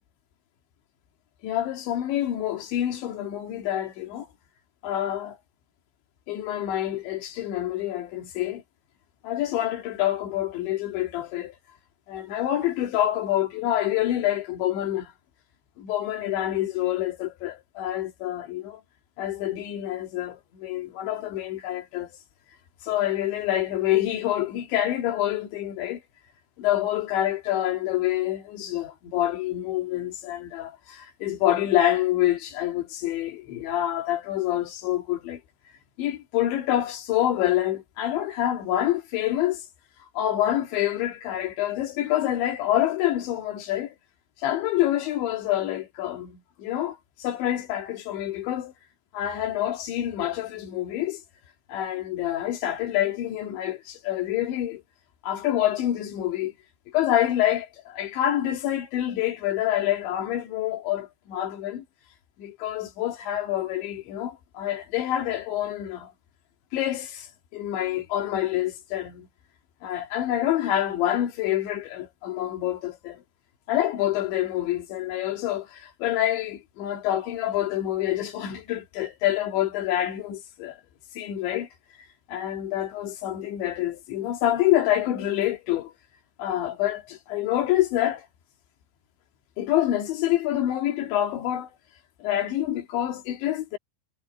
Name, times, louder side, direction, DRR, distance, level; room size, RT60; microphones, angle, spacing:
voice 1, 1.4-4.3 4.8-5.4 6.3-8.6 9.2-11.6 12.1-15.1 15.8-18.8 19.2-22.2 22.8-26.0 26.6-35.4 36.0-39.7 40.2-44.0 44.4-48.7 49.1-51.2 51.7-54.8 55.2-56.5 56.9-61.9 62.4-66.1 66.7-69.3 69.8-73.2 73.7-80.8 81.1-81.7 82.3-85.9 86.4-88.3 89.6-91.7 92.2-93.8, left 13 dB, 85° left, 4.5 m, -27 dB
omnidirectional pair, 5.0 m